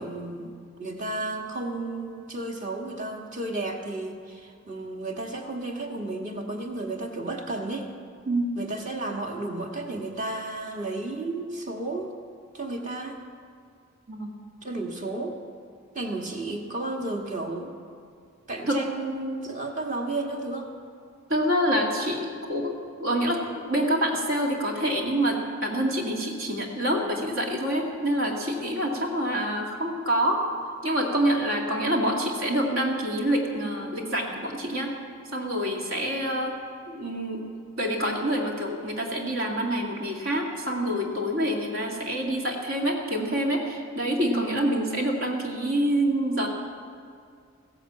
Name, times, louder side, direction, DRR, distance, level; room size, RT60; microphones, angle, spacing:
voice 1, 0.0-7.9 8.5-12.1 12.5-13.2 14.6-15.4 15.9-17.8 18.5-20.7 28.6-29.1 36.2-36.4 44.2-44.6, right 2 dB, 35° right, 1 dB, 1.7 m, -33 dB
voice 2, 8.3-8.6 14.1-14.4 18.7-18.8 21.3-30.5 30.8-35.0 35.3-36.6 36.9-37.4 37.8-46.5, equal, 65° right, 0 dB, 2.2 m, -26 dB
15.5 x 10.5 x 7.5 m, 2.3 s
head